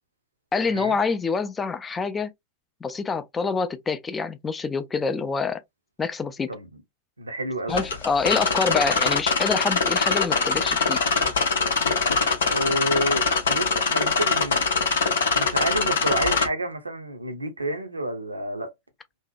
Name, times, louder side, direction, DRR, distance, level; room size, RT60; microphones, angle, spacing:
voice 1, 0.5-2.3 2.8-5.6 6.0-6.5 7.7-11.0, left 4 dB, 15° left, 0.3 m, -26 dB
voice 2, 7.2-7.9 12.4-14.6 15.3-18.7, right 1 dB, 80° right, 0.6 m, -29 dB
sound 1, 7.7-16.5, left 4 dB, 65° left, 0.5 m, -23 dB
2.6 x 2.1 x 2.3 m
figure-of-eight pair, 90°, 0 cm